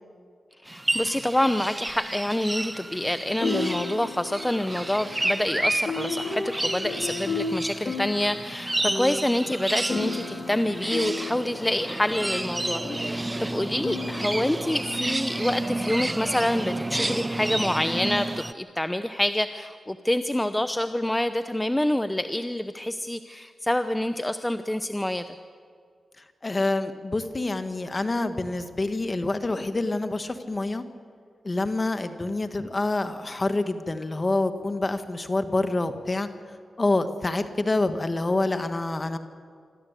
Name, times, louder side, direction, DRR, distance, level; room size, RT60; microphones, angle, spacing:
voice 1, 0.6-25.3, left 1 dB, 15° left, 10 dB, 0.8 m, -27 dB
sound 1, 0.7-18.5, right 1 dB, 20° right, 0.6 m, -31 dB
sound 2, 1.9-2.0 3.4-14.6, left 3 dB, 55° left, 3.5 m, -34 dB
voice 2, 26.4-30.8 31.4-36.3 36.8-39.2, left 2 dB, 35° left, 9 dB, 1.7 m, -27 dB
26.0 x 13.5 x 8.3 m, 2.1 s
cardioid pair, 45°, 0 cm